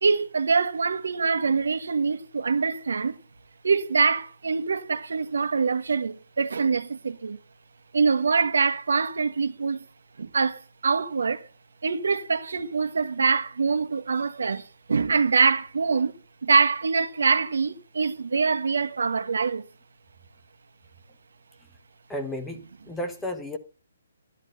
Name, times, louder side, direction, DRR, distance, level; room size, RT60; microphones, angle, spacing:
voice 1, 0.0-3.2 3.6-7.4 7.9-9.8 10.2-11.5 11.8-16.1 16.4-19.6, right 5 dB, 80° right, 1.5 m, -24 dB
voice 2, 22.1-23.6, equal, 5° left, 1.3 m, -33 dB
12.5 x 11.0 x 5.5 m
hypercardioid pair, 170°, 0 cm